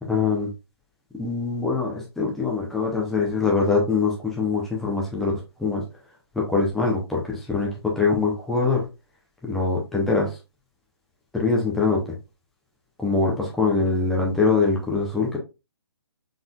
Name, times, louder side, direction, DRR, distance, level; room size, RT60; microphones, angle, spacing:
voice 1, 0.0-0.5 1.2-5.3 5.6-5.8 6.3-8.9 9.4-10.4 11.3-12.1 13.0-15.4, left 4 dB, ahead, -3 dB, 0.7 m, -23 dB
4.1 x 3.7 x 2.3 m, 0.26 s
figure-of-eight pair, 135°, 14 cm